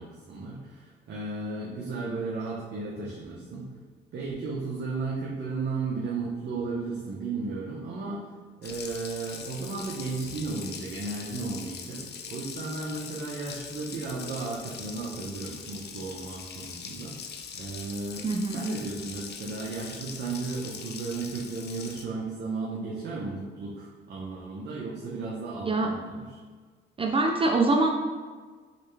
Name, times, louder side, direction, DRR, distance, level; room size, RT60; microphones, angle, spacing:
voice 1, 0.0-3.7 4.1-26.4, right 3 dB, 60° right, -4 dB, 0.8 m, -34 dB
Water tap faucet, 8.6-22.0, left 6 dB, 55° left, 0.5 m, -42 dB
voice 2, 18.2-18.7 25.6-25.9 27.0-27.9, right 2 dB, 30° right, 2 dB, 0.4 m, -24 dB
4.1 x 3.2 x 3.3 m, 1.5 s
cardioid pair, 90°, 20 cm